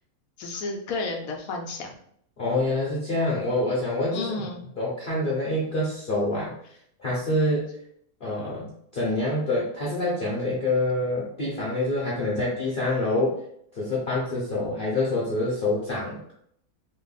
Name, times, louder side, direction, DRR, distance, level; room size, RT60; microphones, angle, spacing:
voice 1, 0.4-1.9 4.1-4.6, left 3 dB, 75° left, 3 dB, 1.0 m, -32 dB
voice 2, 2.4-4.4 4.8-6.5 7.0-7.7 8.2-13.4 13.7-16.2, left 2 dB, 45° left, -5 dB, 0.8 m, -26 dB
3.1 x 2.1 x 3.9 m, 0.68 s
omnidirectional pair, 1.6 m